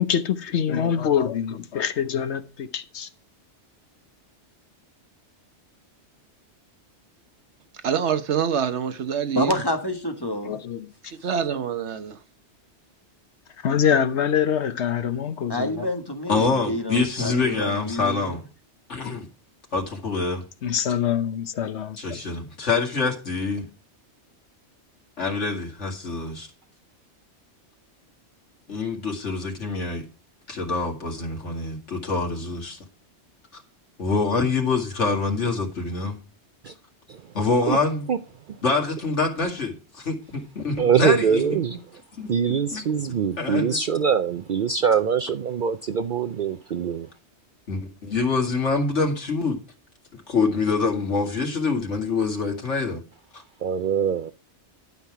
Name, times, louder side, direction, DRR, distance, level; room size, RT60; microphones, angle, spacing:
voice 1, 0.0-3.1 10.4-10.9 13.6-15.9 19.0-19.1 20.6-22.2, left 8 dB, 75° left, 1.1 m, -25 dB
voice 2, 7.8-9.6 11.0-12.2, right 7 dB, 75° right, 1.1 m, -26 dB
voice 3, 9.3-10.6 15.5-18.4, left 1 dB, 20° left, 1.5 m, -28 dB
voice 4, 16.3-18.4 18.9-19.3 19.7-20.4 22.0-23.7 25.2-26.5 28.7-30.0 30.5-32.8 33.5-33.6 34.0-36.2 37.3-38.0 38.6-41.4 42.2-42.3 42.7-42.8 43.4-43.8 47.7-49.6 50.3-53.0, left 4 dB, 90° left, 2.6 m, -25 dB
voice 5, 40.8-42.0 42.3-47.1 53.6-54.3, right 7 dB, 55° right, 0.6 m, -23 dB
12.0 x 5.7 x 4.7 m
omnidirectional pair, 1.2 m